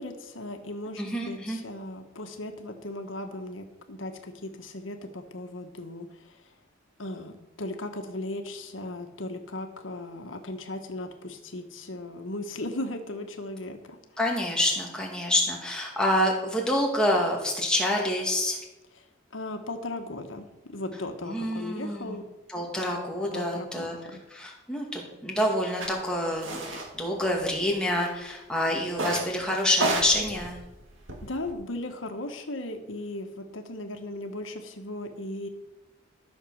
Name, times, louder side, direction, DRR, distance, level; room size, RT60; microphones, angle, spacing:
voice 1, 0.0-6.5 7.0-7.3 7.6-14.0 18.9-19.1 19.3-22.2 22.7-22.8 23.3-24.2 31.2-35.5, left 1 dB, 80° left, 5 dB, 1.5 m, -37 dB
voice 2, 1.0-1.6 14.2-18.6 21.2-22.2 22.5-24.0 24.3-30.6, left 1 dB, 5° left, -2 dB, 2.4 m, -27 dB
sound 1, 25.8-25.9 26.4-26.9 27.2-27.9 28.9-29.3 29.7-31.5, right 2 dB, 85° right, 2.2 m, -31 dB
13.5 x 6.6 x 6.5 m, 0.99 s
head